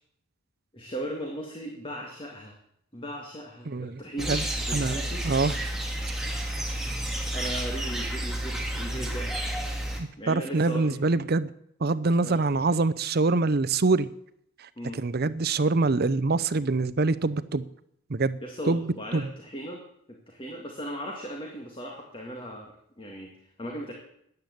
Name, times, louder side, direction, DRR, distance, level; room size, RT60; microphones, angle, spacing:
voice 1, 0.7-2.6 2.9-4.4 4.7-5.3 6.5-6.7 7.0-9.5 10.2-11.0 12.2-12.4 14.8-15.0 18.4-19.8 20.1-23.9, equal, 25° left, 1 dB, 1.9 m, -38 dB
voice 2, 3.7-4.0 4.3-4.4 4.7-5.0 5.2-5.5 10.0-11.5 11.8-14.1 14.9-17.7 18.1-18.4 18.7-18.8 19.1-19.3, right 3 dB, 45° right, 13 dB, 0.6 m, -25 dB
yucatan jungle, 4.2-10.0, right 1 dB, ahead, 1.9 m, -31 dB
13.5 x 9.9 x 8.0 m, 0.73 s
head